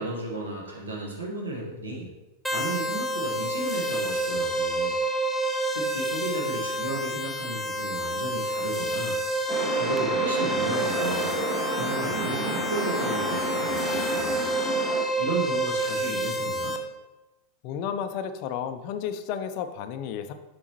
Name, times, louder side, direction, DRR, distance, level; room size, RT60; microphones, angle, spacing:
voice 1, 0.0-2.1 2.5-5.0 5.7-9.2 9.7-11.3 11.7-14.4 15.2-16.7, right 2 dB, 70° right, -2 dB, 1.5 m, -33 dB
sound 1, 2.4-16.8, right 1 dB, ahead, 0.6 m, -29 dB
sound 2, 9.5-15.0, right 1 dB, 40° right, 1.9 m, -31 dB
voice 2, 17.6-20.3, left 8 dB, 45° left, 9 dB, 0.4 m, -32 dB
7.0 x 5.2 x 3.0 m, 1.0 s
figure-of-eight pair, 90°, 0 cm